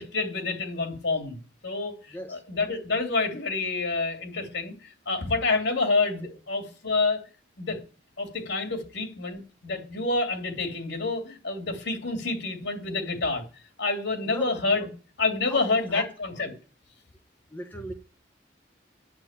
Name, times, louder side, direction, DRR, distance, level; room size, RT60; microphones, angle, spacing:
voice 1, 0.0-1.4 1.6-4.7 5.1-7.2 7.6-7.8 8.2-13.4 13.8-14.9 15.2-16.5, left 3 dB, 80° left, 2.6 m, -28 dB
voice 2, 2.1-2.4 6.2-6.3 14.2-14.5 15.5-16.1 17.5-17.9, equal, 10° left, 1.2 m, -38 dB
10.5 x 5.9 x 8.8 m
head